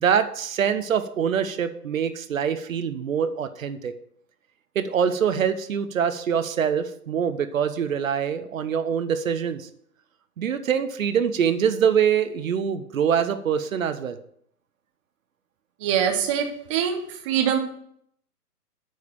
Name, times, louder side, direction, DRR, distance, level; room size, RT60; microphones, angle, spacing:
voice 1, 0.0-3.9 4.7-9.7 10.4-14.2, right 7 dB, 55° right, 11 dB, 0.8 m, -24 dB
voice 2, 15.8-17.6, right 8 dB, 20° right, 4 dB, 0.8 m, -24 dB
8.5 x 4.7 x 7.2 m, 0.68 s
hypercardioid pair, 135°, 47 cm